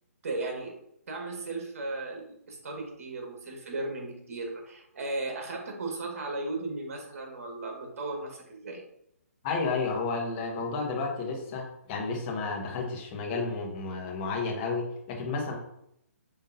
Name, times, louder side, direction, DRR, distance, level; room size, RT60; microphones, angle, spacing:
voice 1, 0.2-0.8 1.1-8.8, right 2 dB, 65° right, 1 dB, 1.5 m, -36 dB
voice 2, 9.4-15.5, left 4 dB, 35° left, 0 dB, 1.2 m, -31 dB
5.5 x 3.6 x 2.6 m, 0.75 s
hypercardioid pair, 145°, 8 cm